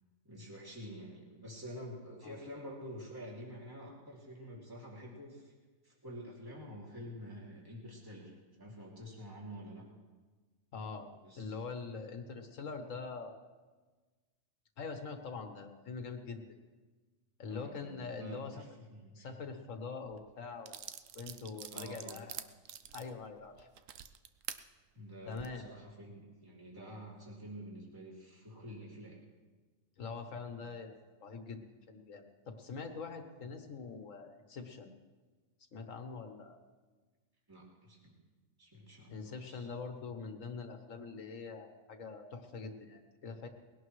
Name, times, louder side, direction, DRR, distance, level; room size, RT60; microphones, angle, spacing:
voice 1, 0.2-5.5 5.8-9.8 11.2-11.5 17.5-19.4 21.7-22.2 24.9-29.2 30.6-30.7 37.5-38.1 38.6-39.7, equal, 15° right, -5 dB, 3.0 m, -48 dB
voice 2, 10.7-11.1 11.4-13.4 14.8-16.6 17.4-18.5 19.1-20.7 21.1-22.4 22.9-23.7 25.3-25.7 30.0-34.9 35.7-36.6 39.1-43.5, left 4 dB, 70° left, 5 dB, 1.6 m, -44 dB
sound 1, 20.1-20.2 20.7-24.6 25.2-25.5, right 10 dB, 75° right, 1.0 m, -46 dB
20.5 x 17.0 x 3.2 m, 1.3 s
omnidirectional pair, 1.4 m